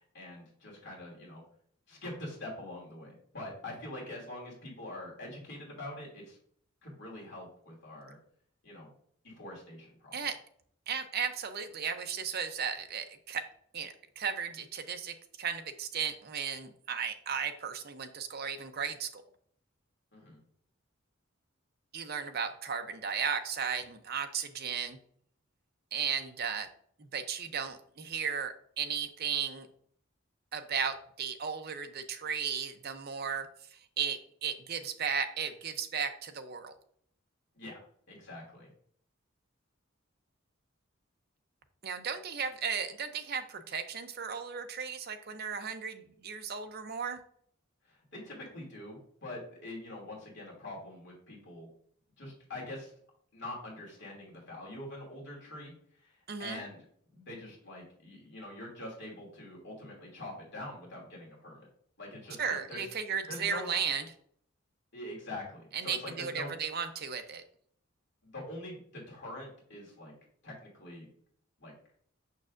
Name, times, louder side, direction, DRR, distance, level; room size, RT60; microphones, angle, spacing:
voice 1, 0.1-1.4 1.9-6.4 6.8-8.2 8.6-8.9 9.2-10.1 20.1-20.4 37.5-37.8 38.1-38.7 47.8-51.7 52.2-52.9 53.3-56.8 57.1-61.7 62.0-62.8 63.3-63.7 64.9-66.5 68.2-70.1 70.4-71.1 71.6-71.7, left 1 dB, 55° left, -3 dB, 2.6 m, -44 dB
voice 2, 10.9-13.5 13.7-19.2 21.9-25.0 25.9-26.7 27.1-29.7 30.5-33.5 33.7-36.7 41.8-47.2 56.3-56.6 62.4-64.0 65.7-67.4, right 6 dB, 50° right, 8 dB, 0.6 m, -35 dB
6.6 x 6.2 x 2.5 m, 0.63 s
head